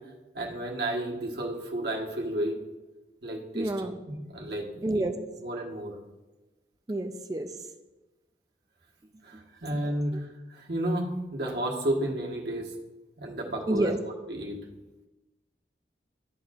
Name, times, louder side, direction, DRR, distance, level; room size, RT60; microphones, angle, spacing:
voice 1, 0.3-2.5 3.2-3.7 4.1-5.0 5.4-6.0 9.2-12.7 13.2-14.6, right 1 dB, 60° right, -1 dB, 1.3 m, -32 dB
voice 2, 3.5-4.0 4.8-5.1 6.9-7.5 9.3-9.4 13.7-14.0, right 1 dB, 20° right, 6 dB, 0.4 m, -28 dB
12.5 x 4.4 x 2.4 m, 1.1 s
head